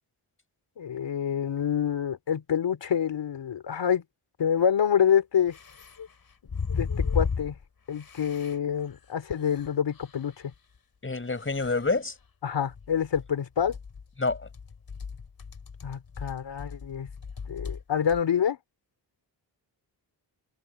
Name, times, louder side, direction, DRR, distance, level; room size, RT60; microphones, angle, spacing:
voice 1, 0.8-4.0 4.4-5.6 6.7-7.6 7.9-10.5 12.4-13.8 15.8-17.1 17.5-18.6, left 8 dB, 70° left, 3.2 m, -27 dB
sound 1, 4.5-4.6 5.5-7.6 7.9-8.6 8.9-9.0 9.2-10.2 10.5-10.6 11.4-11.9 12.7-13.3 13.6-17.8 18.1-18.2, left 5 dB, 50° left, 5.6 m, -35 dB
voice 2, 11.0-12.2 14.2-14.5, left 3 dB, 30° left, 7.0 m, -27 dB
cardioid pair, 80°, 44 cm